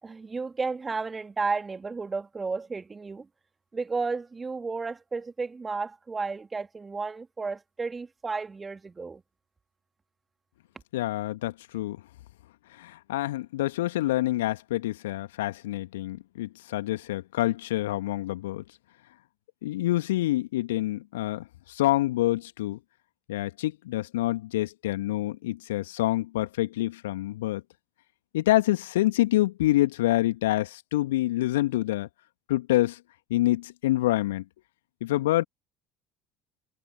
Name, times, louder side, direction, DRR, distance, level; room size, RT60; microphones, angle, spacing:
voice 1, 0.0-3.3 3.7-9.2, right 4 dB, 25° right, 2.8 m, -33 dB
voice 2, 10.9-12.0 12.7-18.6 19.6-22.8 23.3-27.6 28.3-32.1 32.5-33.0 33.3-34.4 35.0-35.4, left 16 dB, 70° left, 2.2 m, -27 dB
figure-of-eight pair, 60°, 0 cm